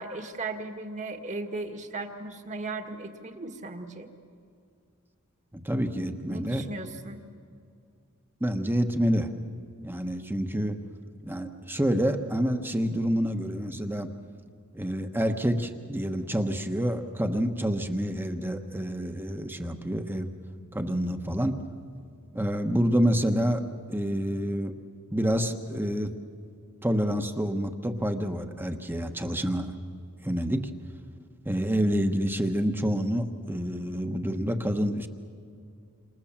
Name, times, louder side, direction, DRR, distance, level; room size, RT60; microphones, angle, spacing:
voice 1, 0.0-4.1 6.3-7.2, right 3 dB, 35° right, 6 dB, 1.8 m, -36 dB
voice 2, 5.6-6.6 8.4-9.3 9.8-10.8 11.2-14.1 14.7-20.3 20.7-21.6 22.3-23.6 23.9-24.7 25.1-26.1 26.8-29.7 30.2-30.7 31.4-35.1, equal, 10° right, 6 dB, 1.2 m, -28 dB
28.5 x 27.0 x 7.4 m, 2.4 s
head